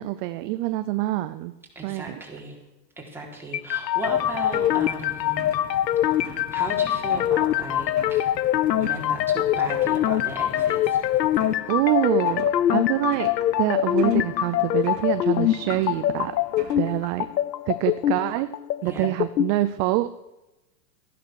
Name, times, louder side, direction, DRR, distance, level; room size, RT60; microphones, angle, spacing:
voice 1, 0.0-1.5 1.8-2.2 11.7-13.3 13.6-16.4 16.8-17.3 17.7-18.5 18.8-20.1, right 16 dB, 35° right, 12 dB, 0.7 m, -25 dB
voice 2, 1.8-2.6 3.0-5.5 6.2-8.3 8.7-11.1 18.8-19.1, right 2 dB, 5° right, -2 dB, 4.1 m, -36 dB
sound 1, 3.5-19.5, left 12 dB, 90° left, 0.8 m, -24 dB
sound 2, 3.9-17.3, right 10 dB, 75° right, 1.8 m, -47 dB
sound 3, 4.0-11.6, left 10 dB, 10° left, 0.4 m, -45 dB
14.5 x 11.5 x 6.5 m, 0.99 s
hypercardioid pair, 120°, 49 cm